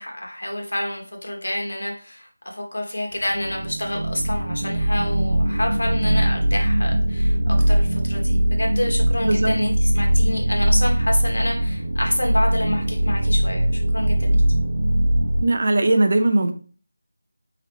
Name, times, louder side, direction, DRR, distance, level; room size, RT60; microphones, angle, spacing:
voice 1, 0.0-13.7 13.9-14.4, left 1 dB, 75° left, 1 dB, 1.6 m, -28 dB
sound 1, 3.2-15.4, right 1 dB, 75° right, 0.8 m, -21 dB
voice 2, 15.4-16.5, right 2 dB, 45° right, 7 dB, 0.5 m, -19 dB
4.3 x 3.8 x 3.2 m, 0.41 s
figure-of-eight pair, 175°, 0 cm